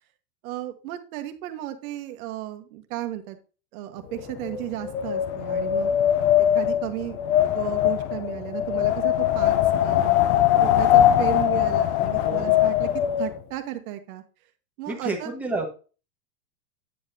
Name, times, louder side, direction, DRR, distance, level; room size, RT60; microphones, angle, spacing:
voice 1, 0.4-3.4 3.7-5.9 6.4-7.2 7.4-9.6 9.8-10.2 10.6-12.9 13.2-14.2 14.8-15.3, right 13 dB, 60° right, 8 dB, 1.5 m, -34 dB
Wind, 4.2-13.4, left 11 dB, 45° left, 0.8 m, -21 dB
voice 2, 12.2-12.6 14.9-15.7, right 2 dB, 5° right, 0 dB, 1.4 m, -30 dB
9.3 x 7.2 x 2.8 m, 0.34 s
supercardioid pair, 165°, 47 cm